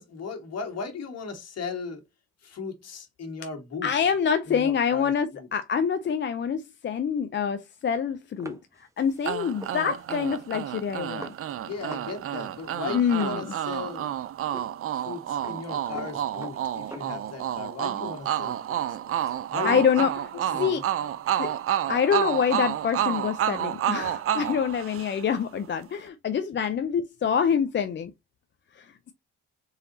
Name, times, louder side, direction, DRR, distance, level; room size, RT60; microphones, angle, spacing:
voice 1, 0.0-2.0 2.4-3.9 4.5-5.5 11.6-14.1 15.0-19.2 19.5-19.8 20.3-20.8, left 4 dB, 55° left, 1.7 m, -37 dB
voice 2, 3.8-8.6 9.0-11.3 12.9-13.5 19.6-20.2 20.6-20.8 21.4-21.5 21.9-28.1, left 7 dB, 40° left, 0.5 m, -26 dB
sound 1, 8.4-12.1 12.4-12.5 12.8-14.1 14.5-14.7 15.0-17.6 18.0-19.4, right 1 dB, 10° right, 1.0 m, -46 dB
sound 2, 9.2-25.4, right 11 dB, 50° right, 0.5 m, -30 dB
4.0 x 4.0 x 2.6 m
cardioid pair, 90°, 30 cm